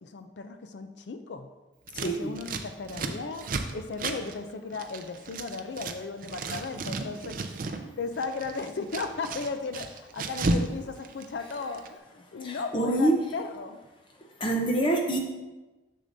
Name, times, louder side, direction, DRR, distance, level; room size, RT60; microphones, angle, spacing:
voice 1, 0.0-1.5 2.0-7.4 8.0-13.8, left 4 dB, 60° left, 8 dB, 0.4 m, -36 dB
voice 2, 1.9-2.4 12.4-13.2 14.4-15.2, right 1 dB, 25° left, 1 dB, 0.7 m, -26 dB
Scissors, 1.9-6.0 6.2-7.8 8.1-10.7 11.0-11.9, right 3 dB, 45° right, 0.4 m, -33 dB
6.6 x 6.5 x 2.6 m, 1.1 s
head